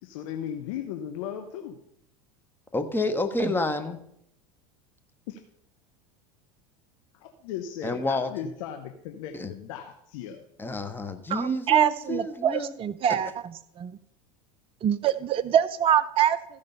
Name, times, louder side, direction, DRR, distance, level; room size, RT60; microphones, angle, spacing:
voice 1, 0.0-1.8 5.3-5.4 7.1-10.5, left 9 dB, 65° left, 5 dB, 1.1 m, -37 dB
voice 2, 2.7-4.0 7.8-8.3 9.3-9.5 10.6-12.7 13.1-13.2, left 2 dB, 10° left, 7 dB, 1.3 m, -29 dB
voice 3, 11.3-13.3 13.8-13.9 14.8-16.4, right 10 dB, 30° right, 13 dB, 0.5 m, -24 dB
14.5 x 5.3 x 5.5 m, 0.72 s
hypercardioid pair, 85°, 18 cm